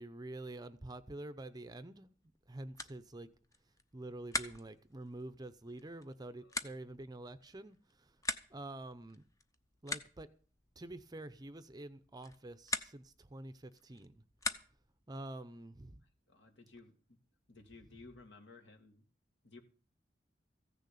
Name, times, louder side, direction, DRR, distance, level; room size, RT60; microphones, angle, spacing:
voice 1, 0.0-2.1 2.5-3.3 3.9-8.2 8.5-9.2 9.8-10.3 10.8-14.2 15.1-16.0, right 2 dB, 20° right, 0.7 m, -47 dB
sound 1, 2.2-15.0, left 3 dB, 20° left, 0.8 m, -45 dB
voice 2, 16.3-17.0 17.5-19.0 19.4-19.6, left 3 dB, 65° left, 2.4 m, -56 dB
15.0 x 6.7 x 8.4 m
head